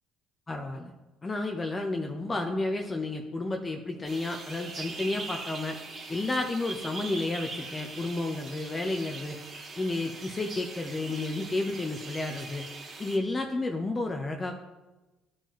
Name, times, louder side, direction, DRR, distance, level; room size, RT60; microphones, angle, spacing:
voice 1, 0.5-0.9 1.2-5.8 6.1-12.6 13.0-14.5, left 2 dB, 25° left, 3 dB, 0.9 m, -31 dB
sound 1, 4.0-13.2, right 3 dB, 45° right, 2.2 m, -42 dB
13.0 x 4.6 x 3.1 m, 1.1 s
supercardioid pair, 75°, 0 cm